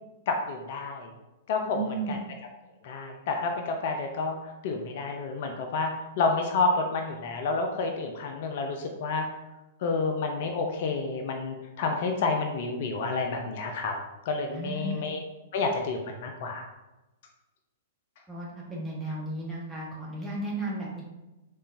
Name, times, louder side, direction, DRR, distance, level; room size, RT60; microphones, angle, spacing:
voice 1, 0.3-1.1 1.5-2.2 2.8-9.3 9.8-13.9 14.2-15.2 15.5-16.6, left 3 dB, 55° left, 3 dB, 0.5 m, -29 dB
voice 2, 1.6-2.2 14.5-15.1 18.3-21.0, right 2 dB, 10° right, -6 dB, 1.4 m, -34 dB
3.9 x 3.7 x 2.6 m, 1.0 s
figure-of-eight pair, 110°, 0 cm